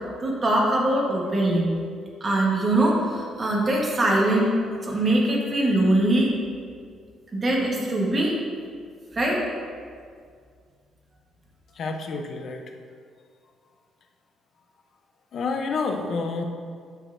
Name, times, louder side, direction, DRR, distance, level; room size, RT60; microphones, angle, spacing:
voice 1, 0.2-1.7 2.2-4.5 4.8-6.3 7.3-8.3 9.1-9.4, right 1 dB, 20° right, -2 dB, 1.1 m, -22 dB
voice 2, 11.7-12.6 15.3-16.4, left 4 dB, 45° left, 4 dB, 0.6 m, -28 dB
9.0 x 6.3 x 2.5 m, 2.1 s
cardioid pair, 170°, 0 cm